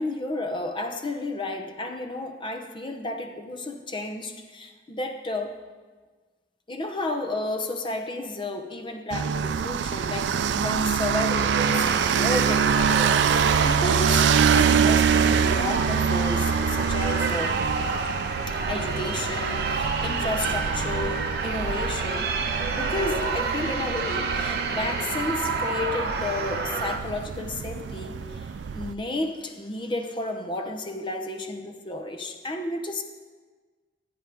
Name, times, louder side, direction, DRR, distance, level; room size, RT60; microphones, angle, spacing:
voice 1, 0.0-5.6 6.7-17.6 18.5-22.3 22.7-33.0, left 2 dB, 25° left, 6 dB, 0.8 m, -32 dB
sound 1, 9.1-28.9, right 7 dB, 80° right, 0.4 m, -25 dB
sound 2, 11.3-27.0, right 4 dB, 60° right, 1.0 m, -29 dB
15.5 x 8.9 x 3.5 m, 1.4 s
head